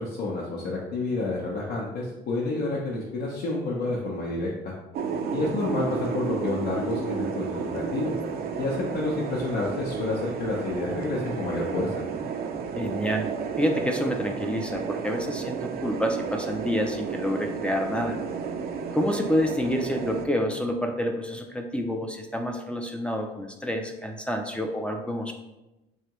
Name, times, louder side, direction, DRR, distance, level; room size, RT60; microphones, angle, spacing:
voice 1, 0.0-4.5 5.3-8.1 8.6-11.9, left 2 dB, 70° left, -4 dB, 0.7 m, -29 dB
sound 1, 4.9-20.3, right 6 dB, 65° right, 0.5 m, -32 dB
voice 2, 5.4-5.8 12.8-13.3 13.6-18.2 18.9-25.3, equal, 5° left, 3 dB, 0.4 m, -28 dB
3.6 x 3.2 x 3.0 m, 0.97 s
cardioid pair, 110°, 17 cm